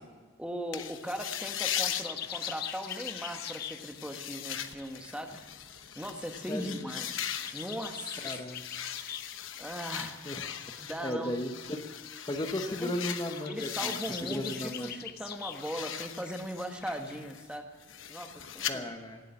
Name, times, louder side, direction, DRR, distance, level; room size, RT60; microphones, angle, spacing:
voice 1, 0.4-5.5 5.9-7.1 7.5-8.4 9.6-10.2 10.8-11.3 12.8-12.9 13.5-17.7 18.1-18.9, equal, 5° right, 4 dB, 1.3 m, -39 dB
sound 1, 0.7-15.0 15.3-18.7, left 9 dB, 90° left, 1.0 m, -40 dB
sound 2, 0.7-12.1 12.5-12.7 12.9-17.2, left 10 dB, 55° left, 0.7 m, -44 dB
voice 2, 6.5-6.9 8.2-8.6 9.9-10.4 11.0-11.8 12.3-15.0 18.7-19.2, left 1 dB, 20° left, 4 dB, 0.9 m, -36 dB
17.5 x 8.3 x 9.8 m, 1.4 s
head